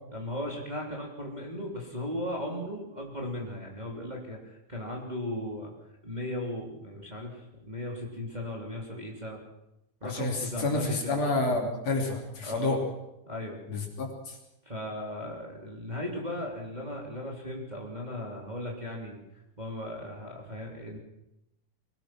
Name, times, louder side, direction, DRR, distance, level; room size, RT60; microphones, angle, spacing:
voice 1, 0.1-5.7 6.0-9.4 10.0-11.2 12.4-12.8 13.3-13.6 14.6-19.2 19.6-21.0, left 1 dB, 15° right, -1 dB, 3.3 m, -37 dB
voice 2, 10.0-12.8 13.7-14.4, left 2 dB, 55° left, 1 dB, 4.2 m, -29 dB
23.5 x 19.0 x 6.1 m, 0.88 s
omnidirectional pair, 3.6 m